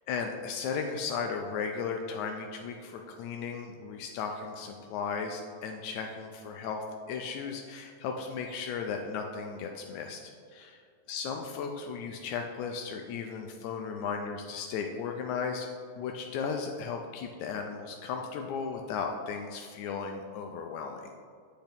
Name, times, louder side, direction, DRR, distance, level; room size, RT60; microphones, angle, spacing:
voice 1, 0.1-10.7 11.1-15.7 16.0-21.1, left 5 dB, 85° left, 3 dB, 1.9 m, -35 dB
7.9 x 5.7 x 3.5 m, 2.2 s
omnidirectional pair, 3.3 m